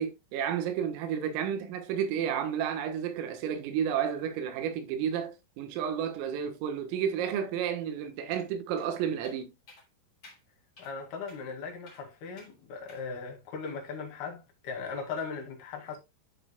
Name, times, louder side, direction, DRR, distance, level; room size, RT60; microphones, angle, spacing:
voice 1, 0.0-9.5, right 8 dB, 85° right, 3.9 m, -31 dB
sound 1, 8.3-8.5 8.8-8.9 9.2-9.4 9.7-9.9 10.2-10.4 10.8-10.9 11.3-11.4 11.9-12.0 12.4-12.5 12.9-13.1, left 2 dB, 30° left, 2.9 m, -54 dB
voice 2, 10.8-16.0, left 5 dB, 55° left, 3.5 m, -38 dB
12.0 x 6.3 x 2.2 m
omnidirectional pair, 5.9 m